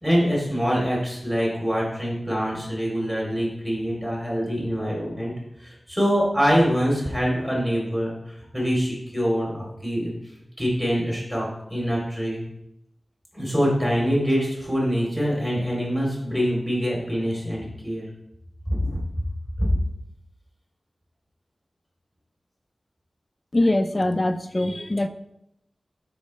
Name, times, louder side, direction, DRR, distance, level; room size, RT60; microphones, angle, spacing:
voice 1, 0.0-5.3 5.6-10.1 10.6-12.4 13.3-18.0 18.7-19.0 19.6-19.7, equal, 15° right, -5 dB, 3.1 m, -24 dB
voice 2, 23.5-25.1, left 1 dB, 30° left, 8 dB, 0.5 m, -22 dB
11.5 x 4.7 x 3.2 m, 0.82 s
wide cardioid pair, 90°, 0 cm